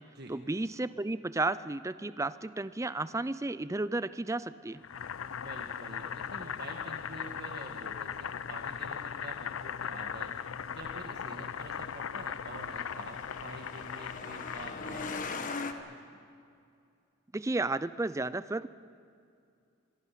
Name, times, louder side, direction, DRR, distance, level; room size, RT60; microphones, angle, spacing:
voice 1, 0.3-4.8 17.3-18.7, right 2 dB, 15° right, 15 dB, 0.4 m, -33 dB
Boiling, 4.8-15.5, left 7 dB, 85° left, 0.5 m, -39 dB
voice 2, 5.4-10.3 10.7-15.6 15.8-16.2, right 2 dB, 55° right, 2 dB, 1.5 m, -47 dB
Truck, 11.6-15.7, left 4 dB, 40° left, 1.3 m, -41 dB
26.5 x 22.0 x 5.8 m, 2.4 s
head